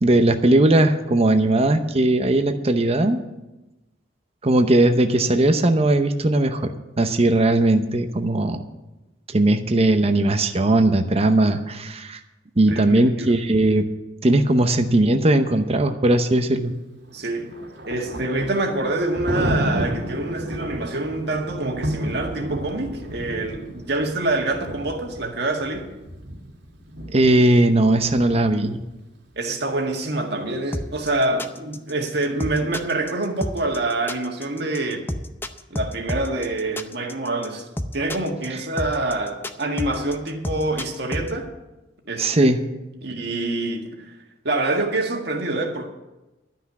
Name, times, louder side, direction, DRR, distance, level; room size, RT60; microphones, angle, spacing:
voice 1, 0.0-3.2 4.4-8.6 9.3-12.2 12.6-13.8 14.2-16.7 27.1-28.8 42.2-42.6, right 1 dB, 35° right, 7 dB, 0.8 m, -18 dB
voice 2, 12.7-13.4 17.1-17.5 17.9-25.9 29.3-35.1 35.7-37.7 37.9-41.5 42.1-42.5 43.0-44.1 44.4-45.9, right 2 dB, 65° right, 2 dB, 1.8 m, -26 dB
Thunder, 17.1-28.9, equal, 85° right, 1.9 m, -32 dB
sound 1, 30.7-41.3, left 1 dB, 10° left, 0.6 m, -30 dB
12.5 x 5.9 x 9.4 m, 1.0 s
head